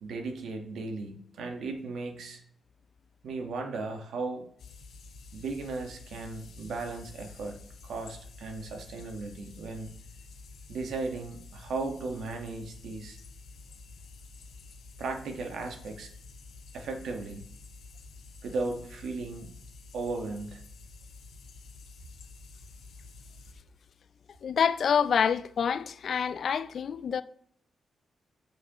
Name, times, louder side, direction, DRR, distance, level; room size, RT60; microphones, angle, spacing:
voice 1, 0.0-2.4 3.2-4.4 5.3-7.6 7.8-9.9 10.7-13.2 15.0-16.1 16.7-17.4 18.4-19.5 19.9-20.6, right 3 dB, 90° right, 1.4 m, -36 dB
sound 1, 4.6-23.5, left 3 dB, 75° left, 0.7 m, -49 dB
voice 2, 24.4-27.2, left 7 dB, 55° left, 0.4 m, -27 dB
7.7 x 7.4 x 3.0 m
wide cardioid pair, 155°, 0 cm